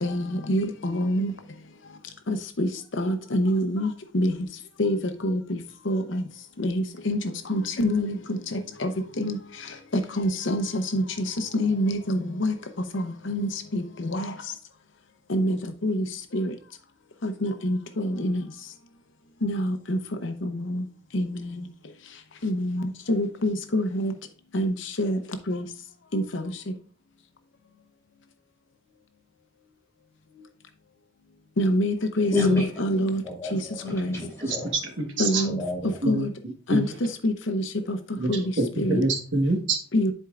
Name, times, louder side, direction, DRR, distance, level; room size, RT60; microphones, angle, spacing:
voice 1, 0.0-1.3 2.3-2.7 3.0-4.3 4.8-5.0 5.2-5.4 5.9-6.2 6.6-7.2 7.5-8.1 8.8-8.9 9.2-9.4 10.2-11.0 11.5-12.5 12.9-13.8 14.1-14.3 15.3-15.6 15.8-16.0 16.3-16.5 17.2-18.4 19.4-20.0 20.5-20.8 21.1-21.4 22.4-22.8 23.1-24.1 24.5-25.2 25.5-25.6 26.1-26.2 31.6-32.3 32.8-33.2 33.5-33.6 33.9-34.1 35.2-35.6 36.1-36.3 36.7-36.8 37.2-37.6 37.9-38.0 38.3-38.4 38.8-39.0 39.9-40.1, equal, 70° left, 0.7 m, -25 dB
voice 2, 32.2-32.7 33.1-34.7 35.4-36.0, left 3 dB, 15° left, 3.5 m, -28 dB
voice 3, 34.4-35.4 36.0-36.2 36.7-37.0 38.1-38.3 38.6-39.8, right 2 dB, 70° right, 1.4 m, -26 dB
10.5 x 4.5 x 2.4 m
head